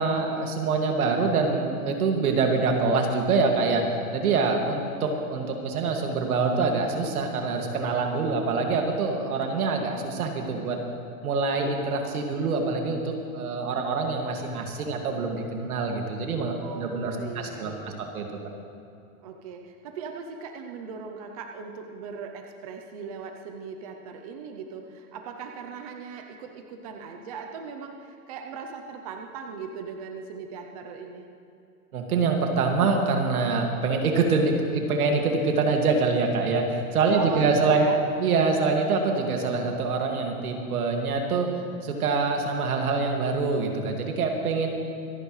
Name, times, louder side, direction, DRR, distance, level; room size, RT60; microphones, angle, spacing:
voice 1, 0.0-3.8 4.1-10.8 11.2-17.7 18.1-18.4 31.9-37.8 38.2-41.5 41.8-44.7, right 4 dB, 75° right, 2 dB, 2.2 m, -25 dB
voice 2, 16.6-18.0 19.2-31.3 37.1-38.0, right 5 dB, 25° right, 4 dB, 0.6 m, -39 dB
25.5 x 10.0 x 3.2 m, 2.6 s
supercardioid pair, 165°, 44 cm